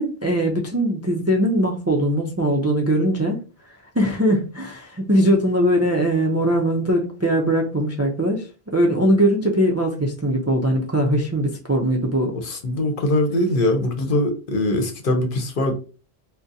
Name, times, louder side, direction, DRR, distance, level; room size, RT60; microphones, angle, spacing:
voice 1, 0.0-3.4 3.9-12.3, right 1 dB, 25° right, 0 dB, 0.3 m, -21 dB
voice 2, 12.4-15.7, left 1 dB, 60° left, 5 dB, 0.8 m, -22 dB
3.7 x 2.1 x 2.7 m, 0.34 s
omnidirectional pair, 1.0 m